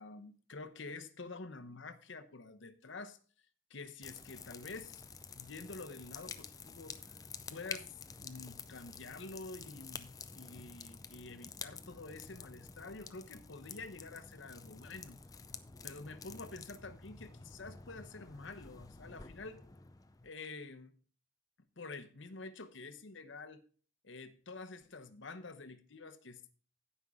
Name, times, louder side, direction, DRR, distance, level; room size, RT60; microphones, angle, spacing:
voice 1, 0.0-3.2 3.7-5.0 5.3-7.0 7.5-15.2 15.8-19.6 20.2-21.0 21.8-23.6 24.0-26.5, left 3 dB, 65° left, 0.9 m, -48 dB
sound 1, 4.0-20.3, left 5 dB, 15° left, 0.4 m, -50 dB
16.0 x 5.6 x 3.6 m
head